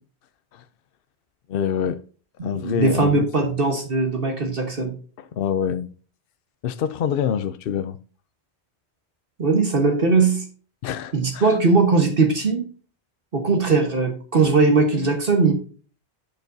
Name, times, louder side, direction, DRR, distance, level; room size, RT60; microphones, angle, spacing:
voice 1, 1.5-2.0 2.4-3.5 5.2-5.9 6.6-8.0 10.8-11.5, left 8 dB, 65° left, 0.7 m, -26 dB
voice 2, 2.4-4.9 9.4-10.4 11.1-12.7 13.3-15.5, right 4 dB, 55° right, 1.5 m, -20 dB
10.5 x 6.9 x 2.7 m
omnidirectional pair, 1.1 m